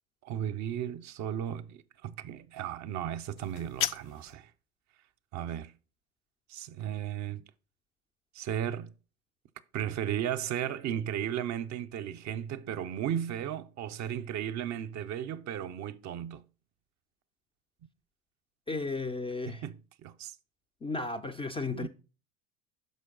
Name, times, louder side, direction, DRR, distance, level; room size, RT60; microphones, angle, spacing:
voice 1, 0.2-4.5 5.3-5.7 6.5-7.4 8.3-8.9 9.7-16.4 19.5-20.4 21.7-21.9, right 10 dB, 45° right, 0.5 m, -35 dB
sound 1, 3.4-4.4, left 12 dB, 80° left, 0.5 m, -34 dB
voice 2, 18.7-19.6 20.8-21.9, left 3 dB, 15° left, 0.3 m, -34 dB
6.3 x 5.2 x 3.8 m
hypercardioid pair, 70°, 40 cm